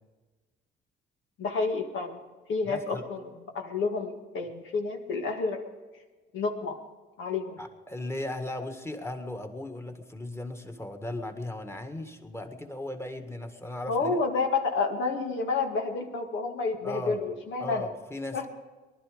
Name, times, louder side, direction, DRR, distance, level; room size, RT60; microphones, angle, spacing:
voice 1, 1.4-2.2 2.5-5.6 6.3-6.8 7.2-7.6 13.9-17.9 18.3-18.4, left 4 dB, 75° left, 3 dB, 2.1 m, -30 dB
voice 2, 2.6-3.0 7.6-14.2 16.8-17.2 17.6-18.5, left 1 dB, 15° left, 5 dB, 1.8 m, -37 dB
19.5 x 12.0 x 5.1 m, 1.3 s
cardioid pair, 90°, 20 cm